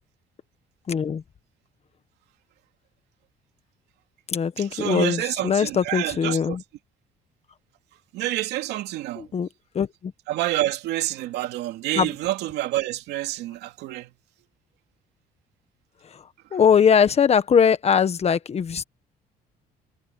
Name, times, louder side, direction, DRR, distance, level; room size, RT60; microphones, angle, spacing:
voice 1, 0.9-1.2 4.3-6.6 9.2-9.5 9.7-10.1 11.9-12.1 16.0-18.8, left 7 dB, 40° left, 1.5 m, -21 dB
voice 2, 4.6-6.6 8.1-9.3 10.3-14.1, right 15 dB, 85° right, 2.7 m, -28 dB
cardioid pair, 110°, 17 cm